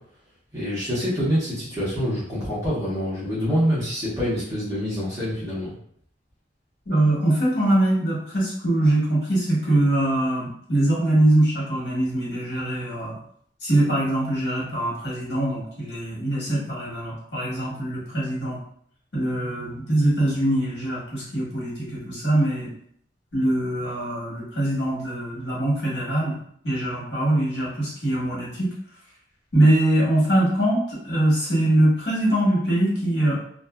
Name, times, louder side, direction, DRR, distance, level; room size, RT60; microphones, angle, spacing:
voice 1, 0.5-5.7, equal, 20° right, -10 dB, 0.9 m, -26 dB
voice 2, 6.8-13.2 13.6-18.6 19.1-22.7 23.3-26.4 26.6-28.7 29.5-33.3, right 1 dB, 75° left, -7 dB, 1.3 m, -22 dB
2.6 x 2.5 x 2.2 m, 0.65 s
head